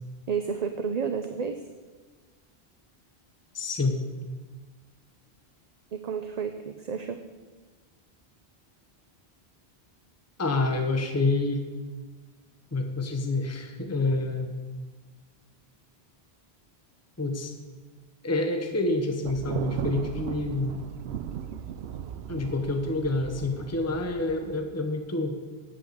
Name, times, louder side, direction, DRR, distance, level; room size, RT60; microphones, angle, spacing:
voice 1, 0.3-1.6 5.9-7.2, right 6 dB, 45° right, 7 dB, 0.6 m, -31 dB
voice 2, 3.5-4.0 10.4-11.6 12.7-14.5 17.2-17.5 18.2-20.8 22.3-25.4, left 2 dB, 15° left, 4 dB, 1.0 m, -27 dB
Thunder, 19.2-24.6, right 9 dB, 80° right, 0.8 m, -37 dB
8.7 x 8.6 x 7.9 m, 1.4 s
omnidirectional pair, 1.1 m